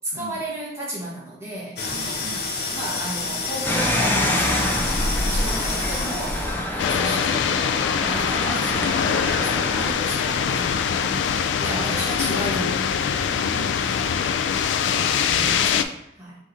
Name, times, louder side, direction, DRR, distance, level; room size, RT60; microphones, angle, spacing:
voice 1, 0.0-2.4 2.7-5.0 5.3-12.8 13.8-14.1 15.5-15.9 16.2-16.4, right 1 dB, 15° right, -6 dB, 1.4 m, -34 dB
sound 1, 1.8-6.8, left 2 dB, 60° left, 0.7 m, -27 dB
voice 2, 1.9-2.5 13.3-13.9 14.8-15.6, right 5 dB, 60° right, 6 dB, 0.4 m, -39 dB
sound 2, 3.6-9.9, left 1 dB, 10° left, 0.6 m, -27 dB
sound 3, 6.8-15.8, left 7 dB, 90° left, 0.3 m, -23 dB
4.8 x 3.6 x 2.7 m, 0.82 s
head